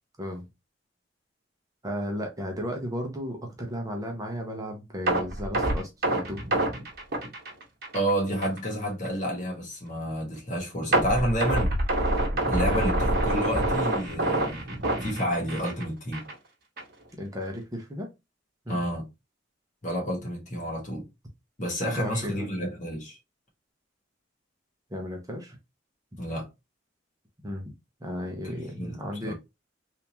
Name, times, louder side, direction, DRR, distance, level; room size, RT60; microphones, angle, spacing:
voice 1, 1.8-6.4 17.2-18.1 18.7-18.8 21.8-22.5 24.9-25.6 27.4-27.7 28.0-29.3, equal, 20° right, 0.8 m, -34 dB
sound 1, 5.1-8.1 8.4-8.6 9.1-9.2 10.9-15.8 16.1-16.3 16.8-16.9, right 1 dB, 55° right, 1.1 m, -26 dB
voice 2, 7.9-11.7 12.5-14.7 15.0-16.3 18.7-19.1 19.8-21.1 21.6-23.2 26.2-26.5 28.4-29.3, equal, 40° left, 1.4 m, -30 dB
3.5 x 2.7 x 2.9 m
head